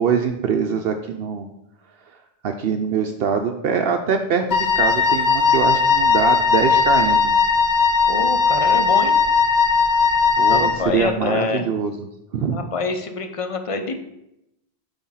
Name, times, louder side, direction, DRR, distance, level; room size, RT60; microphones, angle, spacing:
voice 1, 0.0-1.5 2.4-7.3 10.4-11.9 12.3-12.6, right 6 dB, 70° right, 5 dB, 0.8 m, -23 dB
Wind instrument woodwind instrument, 4.5-10.9, left 5 dB, 75° left, 1.1 m, -18 dB
voice 2, 8.1-9.1 10.5-11.7 12.5-14.0, left 4 dB, 35° left, 7 dB, 0.7 m, -26 dB
8.4 x 3.5 x 5.6 m, 0.84 s
omnidirectional pair, 1.1 m